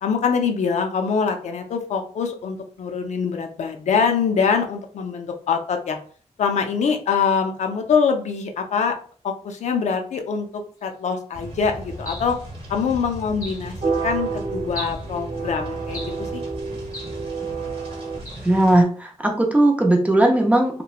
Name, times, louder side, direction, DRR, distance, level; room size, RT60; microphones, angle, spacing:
voice 1, 0.0-6.0 6.4-9.0 9.2-12.4 12.7-13.8 14.0-16.4, left 6 dB, 70° left, 5 dB, 0.4 m, -24 dB
sound 1, 11.3-18.8, right 1 dB, 50° right, 0.9 m, -37 dB
sound 2, 12.1-12.4 13.4-13.7 14.7-15.1 15.9-16.3 16.9-17.2 18.3-18.5, left 1 dB, 25° left, 0.8 m, -36 dB
sound 3, 13.8-18.2, right 5 dB, 75° right, 1.0 m, -29 dB
voice 2, 18.4-20.8, right 1 dB, 10° right, 2 dB, 0.4 m, -18 dB
2.9 x 2.1 x 2.3 m, 0.44 s
wide cardioid pair, 145°, 12 cm